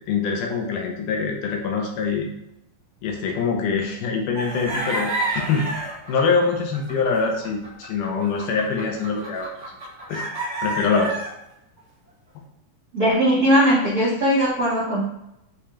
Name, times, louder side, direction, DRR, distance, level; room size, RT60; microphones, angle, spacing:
voice 1, 0.1-2.3 3.0-5.7 6.1-9.5 10.1-10.2 10.6-11.1, left 5 dB, 80° left, 1 dB, 2.2 m, -24 dB
sound 1, 4.3-11.3, right 1 dB, 90° right, 0.5 m, -30 dB
voice 2, 12.9-15.1, equal, 65° right, -8 dB, 0.9 m, -19 dB
6.6 x 2.4 x 2.8 m, 0.85 s
omnidirectional pair, 3.8 m